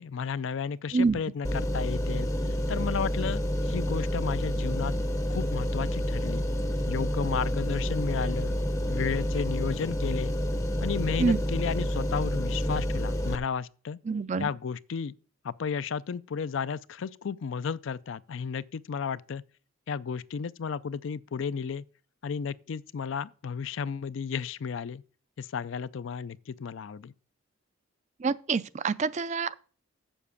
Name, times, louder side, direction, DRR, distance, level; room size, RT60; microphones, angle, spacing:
voice 1, 0.0-2.3 2.7-4.9 5.3-6.4 6.9-8.6 8.9-10.4 10.8-14.0 14.4-15.1 15.4-19.4 19.9-21.8 22.2-25.0 25.4-27.1, left 6 dB, 65° left, 0.4 m, -33 dB
sound 1, 1.4-13.4, equal, 15° left, 0.6 m, -29 dB
voice 2, 14.1-14.5 28.2-29.6, right 4 dB, 35° right, 0.4 m, -26 dB
7.5 x 7.1 x 6.9 m
head